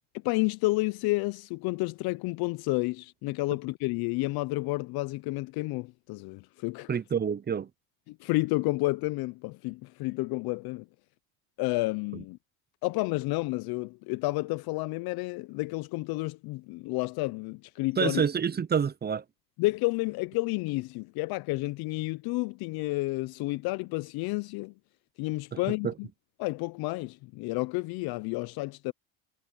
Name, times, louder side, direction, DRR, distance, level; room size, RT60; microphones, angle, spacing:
voice 1, 0.2-7.0 8.1-10.8 11.6-12.4 12.8-18.2 19.6-24.7 25.2-26.1 26.4-28.9, left 22 dB, 60° left, 0.8 m, -30 dB
voice 2, 6.9-7.7 18.0-19.2 25.5-25.6 25.8-25.9, right 7 dB, 25° right, 0.8 m, -27 dB
supercardioid pair, 85°, 41 cm